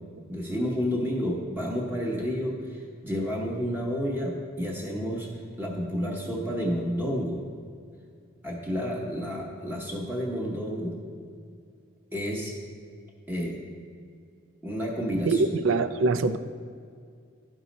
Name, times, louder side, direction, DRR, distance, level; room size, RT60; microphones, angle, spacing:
voice 1, 0.3-5.3 5.6-7.4 8.4-10.9 12.1-12.6 13.3-13.6 14.6-15.6, equal, 10° right, -2 dB, 0.8 m, -30 dB
voice 2, 15.3-16.4, right 3 dB, 80° right, 12 dB, 0.4 m, -23 dB
11.5 x 5.4 x 4.1 m, 2.3 s
head